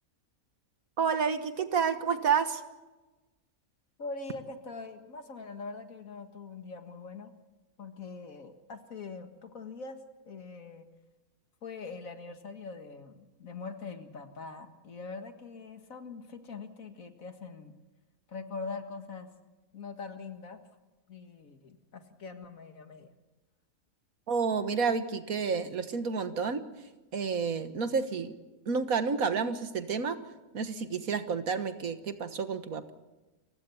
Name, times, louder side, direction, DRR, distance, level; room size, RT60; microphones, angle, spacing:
voice 1, 1.0-2.6 24.3-26.6 27.1-28.3 28.7-30.2 30.5-32.9, right 5 dB, 75° right, 10 dB, 1.9 m, -30 dB
voice 2, 4.0-7.3 7.8-10.0 10.3-10.9 11.6-17.7 18.3-19.3 19.7-20.6 21.1-23.1, left 4 dB, 65° left, 7 dB, 2.2 m, -43 dB
29.0 x 16.0 x 7.1 m, 1.1 s
omnidirectional pair, 1.5 m